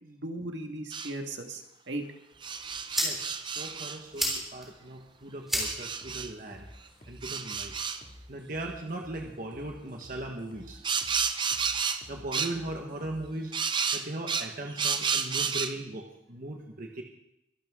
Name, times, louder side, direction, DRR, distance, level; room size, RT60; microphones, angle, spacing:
voice 1, 0.0-2.0, right 2 dB, 70° right, 4 dB, 1.8 m, -37 dB
sound 1, 0.9-1.1 2.4-4.4 5.6-6.3 7.2-8.0 10.8-12.0 12.3-12.6 13.5-15.7, right 6 dB, 25° right, 0.6 m, -31 dB
sound 2, 2.3-8.3, equal, ahead, 3.4 m, -37 dB
voice 2, 3.5-6.7 7.1-7.7 8.3-10.8 12.1-13.5 13.9-17.0, right 1 dB, 45° right, 2 dB, 1.3 m, -38 dB
sound 3, 5.5-13.3, equal, 45° left, 2.4 m, -51 dB
23.5 x 11.5 x 3.7 m, 0.83 s
head